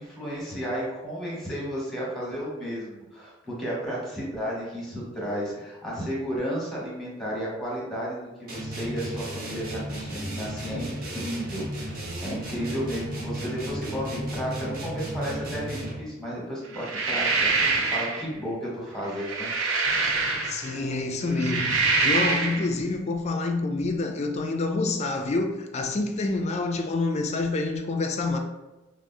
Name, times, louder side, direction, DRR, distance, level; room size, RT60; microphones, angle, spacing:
voice 1, 0.0-19.5, equal, ahead, 0.9 m, -33 dB
sound 1, 8.5-16.1, right 1 dB, 45° right, 0.8 m, -34 dB
sound 2, 16.7-18.2 19.0-20.8 21.3-22.7, right 3 dB, 70° right, 0.5 m, -25 dB
voice 2, 20.4-28.4, left 3 dB, 30° left, 0.3 m, -27 dB
4.7 x 2.0 x 2.6 m
head